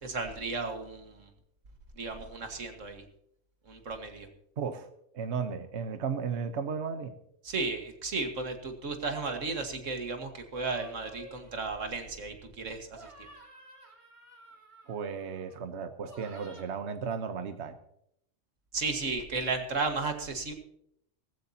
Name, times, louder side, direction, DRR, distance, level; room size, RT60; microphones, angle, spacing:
voice 1, 0.0-1.3 2.0-3.0 3.7-4.3 7.4-13.3 18.7-20.5, right 3 dB, 90° right, 5 dB, 2.0 m, -34 dB
voice 2, 4.6-4.9 5.1-7.1 14.9-17.8, right 6 dB, 65° right, 8 dB, 1.2 m, -34 dB
sound 1, 10.5-12.5 12.9-15.6 16.0-16.6, right 2 dB, 25° right, 2.8 m, -52 dB
18.5 x 14.5 x 2.9 m, 0.74 s
omnidirectional pair, 1.3 m